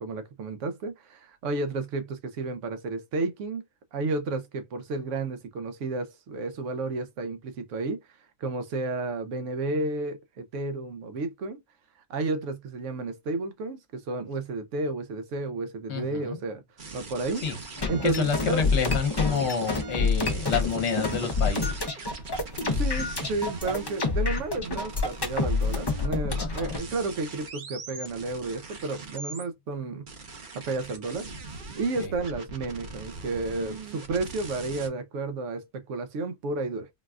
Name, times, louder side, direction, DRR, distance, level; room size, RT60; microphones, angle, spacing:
voice 1, 0.0-3.6 3.9-8.0 8.4-11.6 12.1-16.6 16.9-17.4 17.9-18.6 22.6-30.0 30.7-31.3 31.8-36.9, right 3 dB, 70° right, 0.9 m, -32 dB
voice 2, 15.9-16.4 17.4-17.6 18.0-21.9 26.4-26.8 32.0-32.1, left 5 dB, 60° left, 1.2 m, -28 dB
sound 1, 16.8-29.4 30.1-34.9, right 3 dB, 45° right, 0.8 m, -41 dB
sound 2, 17.8-26.8, left 3 dB, 30° left, 0.5 m, -28 dB
4.0 x 2.3 x 2.3 m
omnidirectional pair, 1.4 m